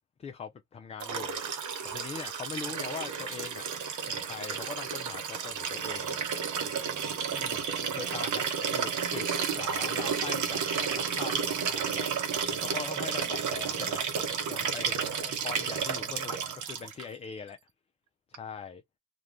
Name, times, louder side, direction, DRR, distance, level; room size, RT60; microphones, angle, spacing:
voice 1, 0.2-1.4 1.8-3.7 4.1-6.1 7.3-7.6 7.9-8.4 8.7-9.3 9.5-14.0 14.5-17.6 18.3-18.8, left 6 dB, 20° left, 0.3 m, -41 dB
Liquid, 1.0-17.0 18.3-18.4, right 7 dB, 50° right, 0.9 m, -32 dB
2.4 x 2.3 x 3.0 m
hypercardioid pair, 70°, 39 cm